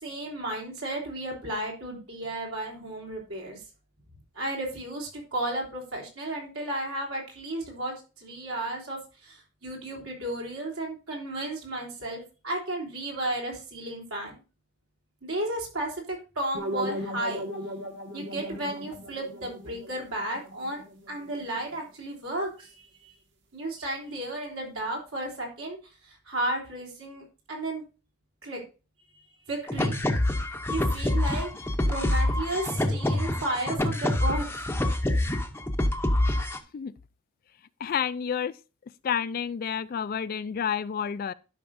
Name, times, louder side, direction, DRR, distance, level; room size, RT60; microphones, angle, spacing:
voice 1, 0.0-3.6 4.4-14.4 15.2-17.5 18.1-23.1 23.5-25.8 26.0-27.8 28.4-28.6 29.5-29.9 30.7-31.5 31.9-34.5, right 1 dB, 75° right, 3.4 m, -33 dB
sound 1, 16.5-21.5, equal, 55° right, 1.5 m, -37 dB
sound 2, 29.7-36.6, left 1 dB, 10° left, 0.6 m, -26 dB
voice 2, 37.8-38.6 39.0-41.3, left 7 dB, 45° left, 0.3 m, -29 dB
12.0 x 5.9 x 2.6 m
head